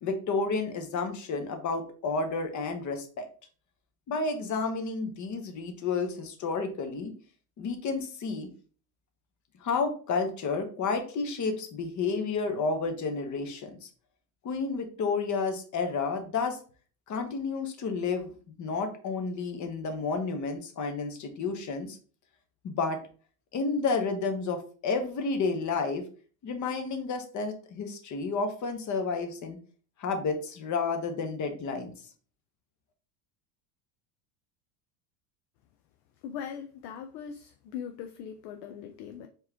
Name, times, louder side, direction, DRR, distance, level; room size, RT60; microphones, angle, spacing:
voice 1, 0.0-3.3 4.1-7.1 7.6-8.5 9.6-13.9 14.4-16.6 17.1-18.3 18.6-22.0 22.6-23.0 23.5-26.0 26.4-29.6 30.0-31.9, left 4 dB, 35° left, 1.1 m, -31 dB
voice 2, 36.2-39.3, left 8 dB, 55° left, 0.6 m, -40 dB
4.6 x 3.0 x 3.4 m
supercardioid pair, 105°, 49 cm